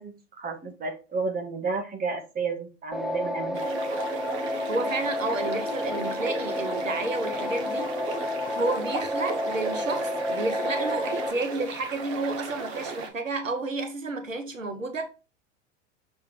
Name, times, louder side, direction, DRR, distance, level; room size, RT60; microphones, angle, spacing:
voice 1, 0.0-3.6, right 4 dB, 20° right, 1.9 m, -32 dB
sound 1, 2.9-11.3, left 1 dB, ahead, 0.7 m, -30 dB
sound 2, 3.5-13.1, right 4 dB, 50° right, 1.6 m, -36 dB
voice 2, 4.7-8.3 8.5-15.1, right 3 dB, 90° right, 1.0 m, -31 dB
6.5 x 4.6 x 3.2 m
figure-of-eight pair, 85°, 38 cm